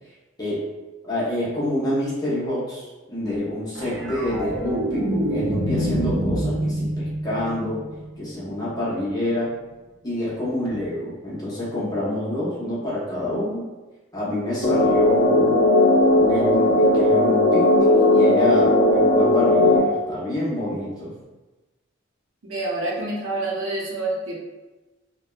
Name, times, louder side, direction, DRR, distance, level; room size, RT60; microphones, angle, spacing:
voice 1, 1.0-7.8 8.2-9.5 10.0-13.7 14.1-15.7 16.1-21.1, left 1 dB, 20° left, -8 dB, 0.8 m, -27 dB
sound 1, 3.7-8.2 10.6-10.8, right 1 dB, 55° right, 0.4 m, -26 dB
sound 2, 14.6-19.8, left 1 dB, 40° left, 0.5 m, -17 dB
voice 2, 22.5-24.3, right 2 dB, 80° right, -4 dB, 0.7 m, -27 dB
3.4 x 2.2 x 2.3 m, 1.1 s
head